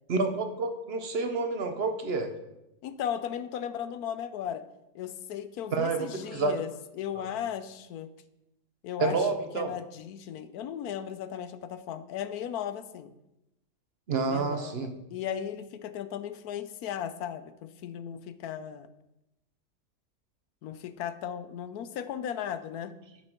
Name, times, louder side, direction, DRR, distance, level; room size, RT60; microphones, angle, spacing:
voice 1, 0.1-2.3 5.7-6.5 7.2-7.3 9.0-9.7 14.1-14.9, right 4 dB, 45° right, 6 dB, 1.0 m, -29 dB
voice 2, 2.8-4.6 4.9-6.7 6.9-8.1 8.8-9.2 9.5-13.1 14.3-18.9 20.6-22.9, left 9 dB, 80° left, 12 dB, 1.1 m, -36 dB
10.5 x 6.2 x 4.5 m, 0.92 s
omnidirectional pair, 1.6 m